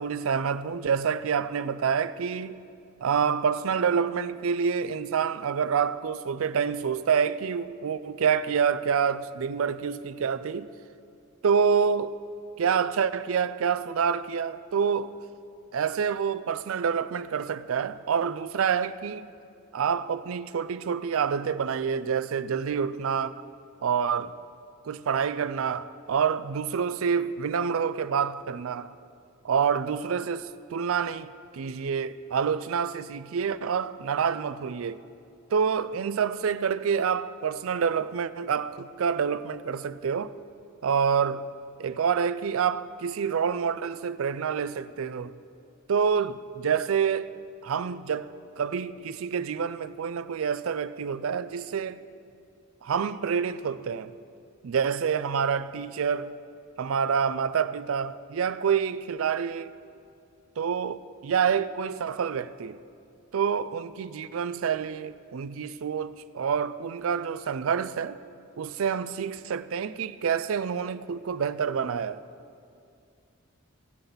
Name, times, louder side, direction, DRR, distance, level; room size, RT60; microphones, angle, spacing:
voice 1, 0.0-2.6 3.0-10.7 11.4-12.1 12.6-15.1 15.7-19.3 19.7-23.3 23.8-24.3 24.8-28.9 29.4-35.0 35.5-40.3 40.8-41.5 41.8-45.4 45.9-47.3 47.6-48.3 48.6-52.0 52.8-54.1 54.6-56.3 56.8-59.7 60.6-62.8 63.3-68.2 68.6-72.2, right 6 dB, 75° right, 0.4 m, -27 dB
19.5 x 6.9 x 4.0 m
head